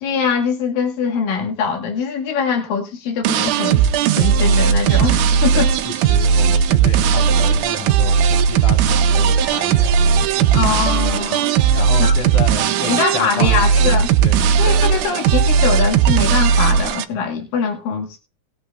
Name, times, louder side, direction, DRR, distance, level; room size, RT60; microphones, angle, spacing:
voice 1, 0.0-3.8 4.2-5.7 10.5-11.6 12.0-12.1 12.9-14.1 14.5-18.2, left 6 dB, 85° left, 3.1 m, -22 dB
sound 1, 3.2-17.0, right 7 dB, 75° right, 2.1 m, -16 dB
voice 2, 5.9-11.0 11.7-14.6, left 6 dB, 65° left, 3.5 m, -31 dB
19.0 x 8.6 x 2.4 m
omnidirectional pair, 3.9 m